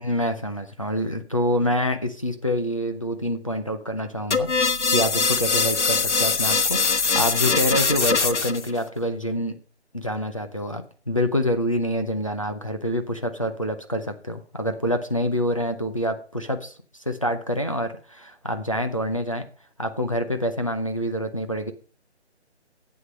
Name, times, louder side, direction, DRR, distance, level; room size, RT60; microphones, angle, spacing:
voice 1, 0.0-9.6 9.9-16.7 17.1-19.5 19.8-21.7, equal, 30° left, 5 dB, 0.7 m, -26 dB
sound 1, 4.3-8.7, left 5 dB, 85° left, 1.2 m, -22 dB
11.5 x 8.0 x 5.3 m, 0.40 s
hypercardioid pair, 180°, 34 cm